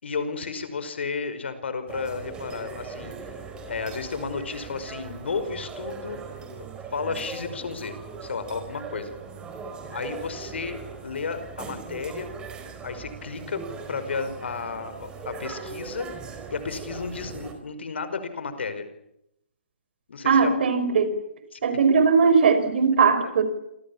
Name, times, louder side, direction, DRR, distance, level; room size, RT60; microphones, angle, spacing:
voice 1, 0.0-3.4 3.6-6.2 6.9-7.9 8.2-9.1 9.9-12.3 12.8-13.6 13.9-16.1 16.5-18.9 20.1-20.5 21.5-21.6 23.2-23.3, left 5 dB, 70° left, 11 dB, 5.0 m, -32 dB
sound 1, 1.9-17.5, right 5 dB, 15° right, 4.7 m, -39 dB
voice 2, 20.2-21.1 21.6-23.4, right 5 dB, 60° right, 11 dB, 5.7 m, -19 dB
28.0 x 25.5 x 7.3 m, 0.81 s
hypercardioid pair, 145°, 6 cm